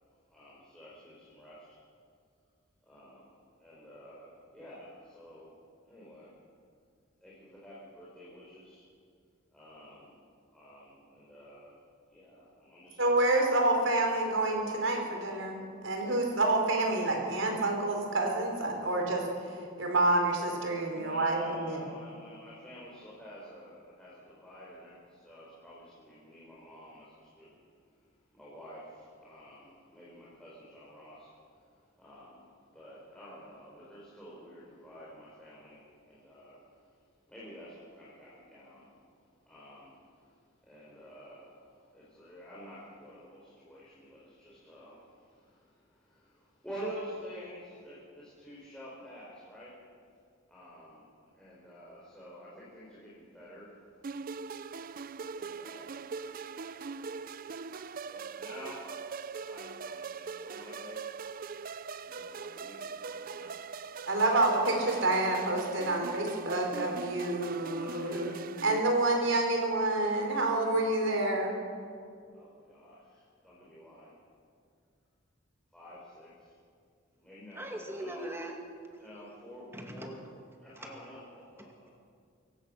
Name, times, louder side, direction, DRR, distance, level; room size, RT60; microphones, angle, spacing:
voice 1, 0.3-1.8 2.8-5.6 5.8-6.3 7.2-8.9 9.5-10.1 10.5-11.8 12.1-13.0 20.9-27.6 27.9-49.8 50.5-51.0 51.3-54.2 55.3-56.1 56.7-57.1 58.1-58.9 59.4-61.0 62.0-63.5 67.6-68.4 72.3-74.2 75.7-76.6 77.2-78.3 79.0-80.2 80.6-81.9, equal, 5° left, -8 dB, 4.3 m, -50 dB
voice 2, 13.0-21.9 64.0-68.3 68.6-71.6, right 2 dB, 65° right, 2 dB, 4.6 m, -28 dB
sound 1, 54.0-68.8, right 5 dB, 45° right, 0.4 m, -41 dB
voice 3, 77.6-78.6 79.7-80.1, right 1 dB, 10° right, 2 dB, 2.2 m, -39 dB
25.0 x 16.0 x 6.5 m, 2.3 s
head